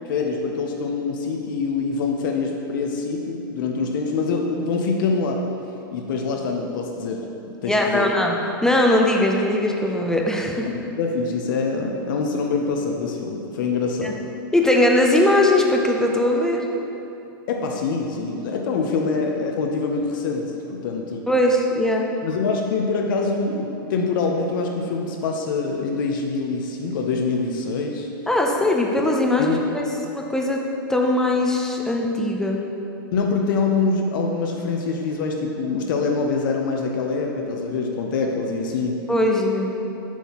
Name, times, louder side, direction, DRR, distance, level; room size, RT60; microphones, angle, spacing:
voice 1, 0.1-5.4 5.9-8.1 10.7-14.2 17.5-21.2 22.2-28.1 29.4-29.9 33.1-38.9, left 4 dB, 60° left, 1 dB, 0.6 m, -25 dB
voice 2, 7.6-8.3 8.6-10.7 14.0-14.1 14.5-16.6 21.3-22.1 28.3-29.8 30.1-30.6 30.9-32.6 39.1-39.8, left 1 dB, 5° left, 0 dB, 0.5 m, -20 dB
7.2 x 5.6 x 2.9 m, 2.9 s
hypercardioid pair, 130°, 12 cm